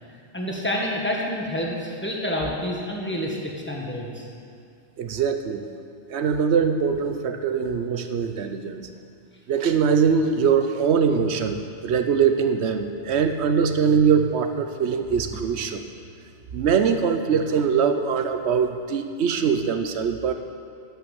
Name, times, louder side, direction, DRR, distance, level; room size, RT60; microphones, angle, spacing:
voice 1, 0.3-4.2, left 1 dB, 10° left, -2 dB, 1.4 m, -28 dB
voice 2, 5.0-5.7 6.1-8.9 9.5-15.8 16.5-20.3, right 6 dB, 75° right, 7 dB, 1.0 m, -22 dB
11.5 x 5.8 x 7.2 m, 2.4 s
omnidirectional pair, 1.2 m